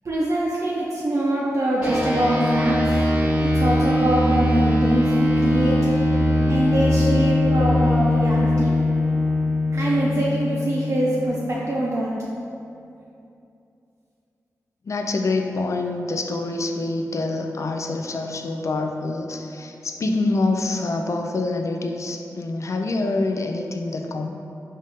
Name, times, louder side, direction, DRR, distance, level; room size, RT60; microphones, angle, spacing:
voice 1, 0.0-2.9 3.4-5.9 6.5-8.8 9.7-12.1, right 1 dB, 55° right, -6 dB, 0.5 m, -24 dB
sound 1, 1.8-11.6, left 1 dB, 20° right, 1.1 m, -21 dB
voice 2, 14.9-24.3, left 2 dB, 55° left, 4 dB, 0.3 m, -26 dB
4.0 x 2.5 x 3.5 m, 2.7 s
cardioid pair, 50°, 6 cm